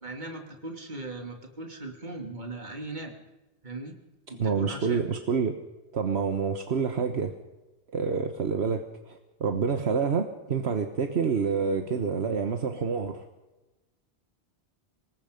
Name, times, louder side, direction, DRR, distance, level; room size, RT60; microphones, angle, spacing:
voice 1, 0.0-3.1 3.6-4.0 4.3-5.0, right 2 dB, 40° right, 3 dB, 3.0 m, -38 dB
voice 2, 4.4-5.5 5.9-7.3 7.9-13.2, right 5 dB, 70° right, 6 dB, 1.5 m, -28 dB
25.0 x 20.5 x 5.3 m, 1.1 s
omnidirectional pair, 1.1 m